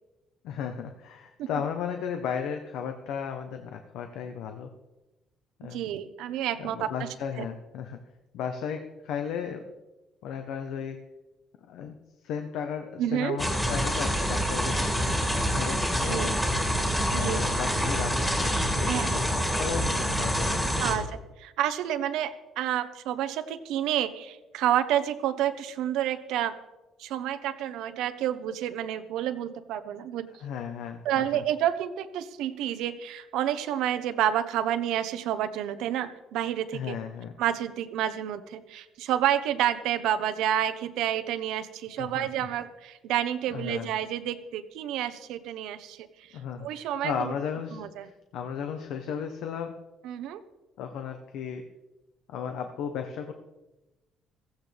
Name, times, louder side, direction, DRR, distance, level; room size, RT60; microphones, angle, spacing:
voice 1, 0.4-4.7 5.6-5.8 6.6-8.0 8.3-9.6 10.2-11.0 11.7-12.0 12.2-14.8 15.5-16.4 17.1-20.8 30.4-31.4 36.7-37.3 42.0-42.3 43.5-43.9 46.3-47.8 48.3-49.7 50.8-51.6 52.3-53.3, left 7 dB, 75° left, 6 dB, 1.0 m, -35 dB
voice 2, 5.6-7.1 7.4-7.5 13.0-13.4 16.1-16.4 17.1-17.4 18.8-19.2 20.8-21.1 21.4-26.5 27.0-30.3 31.0-37.0 37.4-47.3 47.7-48.1 50.0-50.4, right 11 dB, 85° right, 10 dB, 1.0 m, -29 dB
sound 1, 13.4-20.9, equal, 5° left, 2.5 m, -26 dB
16.0 x 15.5 x 3.5 m, 1.1 s
cardioid pair, 165°, 0 cm